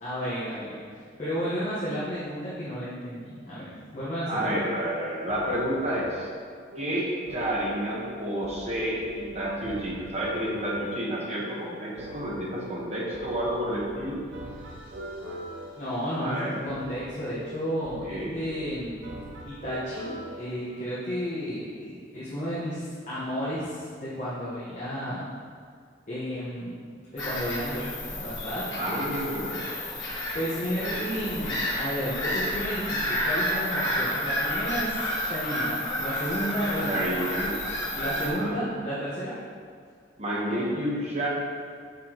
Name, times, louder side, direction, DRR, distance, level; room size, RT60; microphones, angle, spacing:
voice 1, 0.0-4.7 15.8-19.1 19.4-25.3 26.1-29.0 30.3-37.2 37.9-39.4, equal, 40° left, -10 dB, 1.3 m, -32 dB
voice 2, 4.3-6.3 6.8-14.2 16.2-16.6 18.0-18.4 28.8-29.7 30.8-31.2 36.8-37.6 37.9-38.6 40.2-41.3, equal, 35° right, -4 dB, 1.2 m, -30 dB
sound 1, 5.3-20.5, right 1 dB, 90° right, 0.7 m, -42 dB
Bird vocalization bird call bird song / Gull seagull, 27.2-38.3, left 1 dB, 70° left, 1.6 m, -30 dB
6.8 x 5.9 x 3.0 m, 2.1 s
head